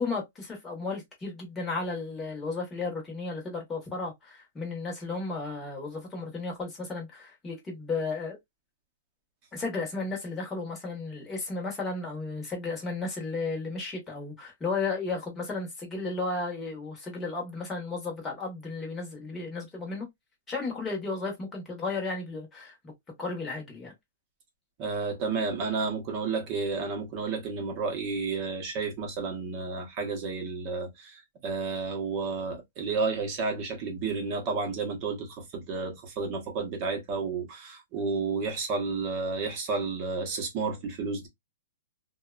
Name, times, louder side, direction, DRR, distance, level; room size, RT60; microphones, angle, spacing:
voice 1, 0.0-8.4 9.5-20.1 20.5-22.9 23.2-23.9, left 3 dB, 10° left, 0.9 m, -34 dB
voice 2, 24.8-41.3, right 4 dB, 25° right, 0.8 m, -31 dB
2.7 x 2.1 x 2.3 m
hypercardioid pair, 170°, 0 cm